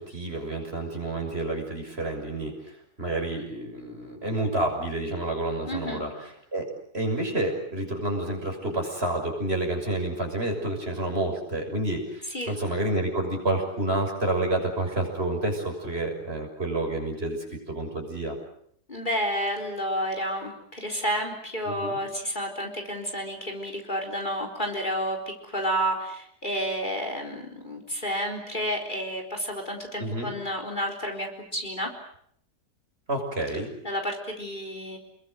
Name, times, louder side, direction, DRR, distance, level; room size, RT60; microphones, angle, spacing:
voice 1, 0.0-18.4 21.6-22.0 30.0-30.3 33.1-33.7, right 2 dB, 40° right, 3 dB, 6.7 m, -29 dB
voice 2, 5.7-6.0 12.3-12.5 18.9-31.9 33.8-35.0, equal, 30° left, 3 dB, 4.3 m, -30 dB
29.5 x 22.0 x 8.0 m, 0.68 s
omnidirectional pair, 1.7 m